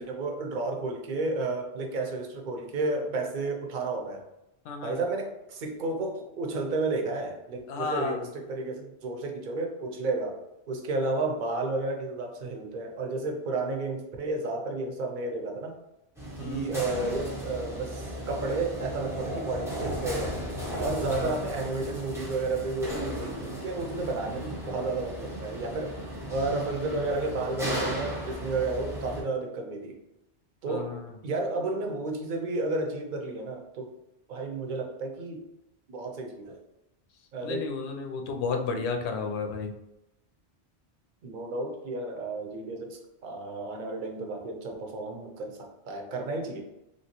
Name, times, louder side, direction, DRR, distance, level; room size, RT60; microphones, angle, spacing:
voice 1, 0.0-4.2 4.8-10.4 10.7-15.8 16.4-20.4 20.8-26.0 26.3-30.0 30.6-31.0 31.2-33.9 34.3-35.5 35.9-36.6 37.3-37.7 41.2-46.6, right 3 dB, 55° right, 3 dB, 0.6 m, -32 dB
voice 2, 4.7-5.0 7.7-8.2 16.4-16.7 21.1-21.3 30.7-31.0 37.4-39.7, left 4 dB, 75° left, 4 dB, 0.8 m, -32 dB
sound 1, 16.2-29.2, equal, 5° right, 0.6 m, -35 dB
3.0 x 2.7 x 2.9 m, 0.89 s
omnidirectional pair, 1.2 m